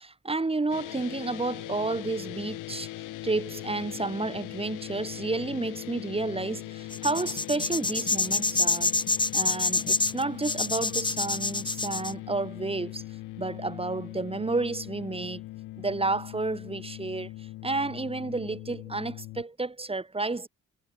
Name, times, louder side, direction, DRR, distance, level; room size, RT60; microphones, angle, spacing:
voice 1, 0.0-8.9 9.3-13.0 13.4-15.4 15.8-20.5, right 3 dB, 20° right, 3.0 m, -31 dB
sound 1, 0.7-19.4, left 17 dB, 90° left, 1.1 m, -40 dB
sound 2, 6.9-12.1, left 3 dB, 15° left, 0.9 m, -27 dB
cardioid pair, 90°, 30 cm